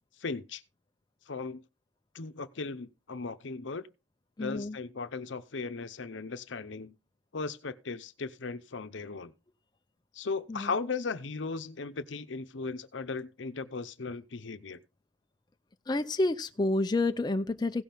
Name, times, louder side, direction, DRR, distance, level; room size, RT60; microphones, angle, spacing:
voice 1, 0.2-0.6 1.3-1.6 2.1-3.9 4.4-7.0 7.3-9.3 10.1-14.8, left 4 dB, 70° left, 0.7 m, -37 dB
voice 2, 4.4-4.8 10.5-10.7 15.9-17.8, left 2 dB, 20° left, 0.4 m, -29 dB
16.5 x 5.9 x 3.5 m
head